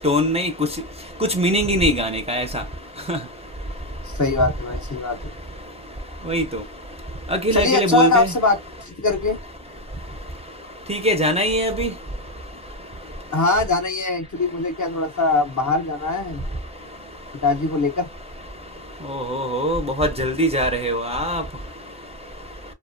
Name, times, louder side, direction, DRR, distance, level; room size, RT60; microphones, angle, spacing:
voice 1, 0.0-0.5 1.2-2.6 3.1-3.2 6.3-6.4 7.3-8.3 10.9-11.9 19.1-21.4, equal, 15° right, 0.5 m, -21 dB
voice 2, 4.1-5.3 7.5-9.4 13.3-16.4 17.4-18.1, left 3 dB, 40° left, 0.6 m, -22 dB
2.4 x 2.1 x 2.4 m
cardioid pair, 40°, 48 cm